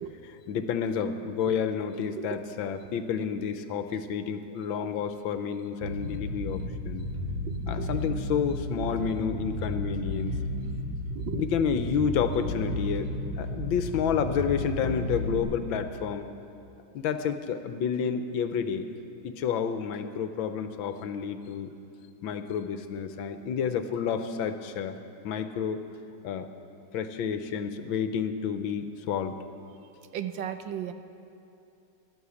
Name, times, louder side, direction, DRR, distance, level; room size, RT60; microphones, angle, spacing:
voice 1, 0.2-7.0 7.7-10.4 11.3-13.1 13.4-16.3 16.9-18.9 19.2-21.7 22.2-25.0 25.2-25.8 26.2-26.5 26.9-29.4, left 7 dB, 80° left, 9 dB, 1.5 m, -30 dB
Bass guitar, 5.8-15.4, left 1 dB, 35° right, 2.1 m, -33 dB
voice 2, 30.1-30.9, right 10 dB, 70° right, 9 dB, 1.4 m, -34 dB
14.5 x 12.0 x 7.0 m, 2.7 s
omnidirectional pair, 2.2 m